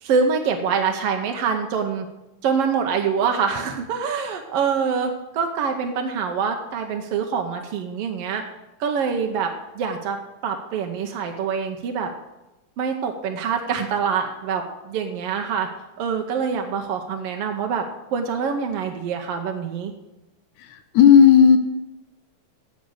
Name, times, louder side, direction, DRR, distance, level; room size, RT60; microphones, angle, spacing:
voice 1, 0.0-2.1 2.4-8.4 8.8-9.5 9.7-10.2 10.4-12.1 12.8-15.7 16.0-17.8 18.1-19.9, right 6 dB, 75° right, 4 dB, 1.4 m, -25 dB
voice 2, 20.6-21.6, left 7 dB, 75° left, 9 dB, 2.0 m, -13 dB
15.0 x 5.4 x 6.4 m, 0.99 s
omnidirectional pair, 3.7 m